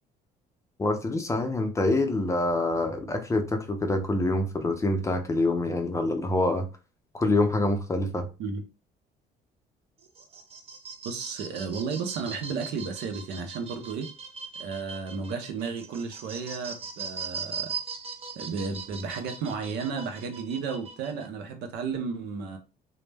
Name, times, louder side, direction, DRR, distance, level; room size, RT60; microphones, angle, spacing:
voice 1, 0.8-6.7 7.1-8.3, left 2 dB, 15° left, 0.4 m, -26 dB
sound 1, 10.0-21.3, right 5 dB, 35° right, 0.5 m, -40 dB
voice 2, 11.0-14.1 14.6-17.7 18.4-22.6, right 5 dB, 80° right, 0.6 m, -33 dB
2.1 x 2.0 x 3.2 m
cardioid pair, 110°, 17 cm